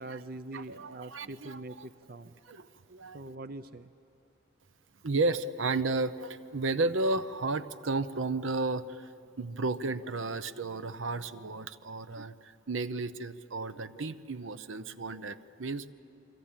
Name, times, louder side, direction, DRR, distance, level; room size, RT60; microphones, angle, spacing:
voice 1, 0.0-2.4 3.1-3.9, right 2 dB, 45° right, 11 dB, 0.6 m, -43 dB
voice 2, 0.5-1.9 2.4-3.2 5.0-9.1 9.4-15.9, right 3 dB, 75° right, 13 dB, 0.9 m, -33 dB
29.0 x 23.0 x 8.9 m, 2.6 s
head